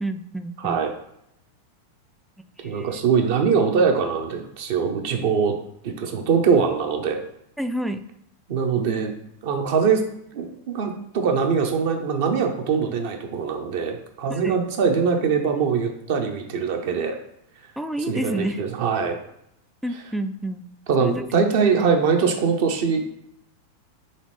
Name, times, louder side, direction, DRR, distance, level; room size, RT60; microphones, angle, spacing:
voice 1, 0.0-0.8 2.6-2.9 7.6-8.0 14.3-14.6 17.8-18.6 19.8-20.6 21.0-21.3, right 1 dB, ahead, 8 dB, 0.3 m, -29 dB
voice 2, 0.6-0.9 2.6-5.6 5.8-7.2 8.5-9.1 9.4-10.0 10.3-17.2 18.1-19.2 20.9-23.0, right 6 dB, 50° right, 4 dB, 0.7 m, -22 dB
4.1 x 3.3 x 3.2 m, 0.77 s
figure-of-eight pair, 90°, 0 cm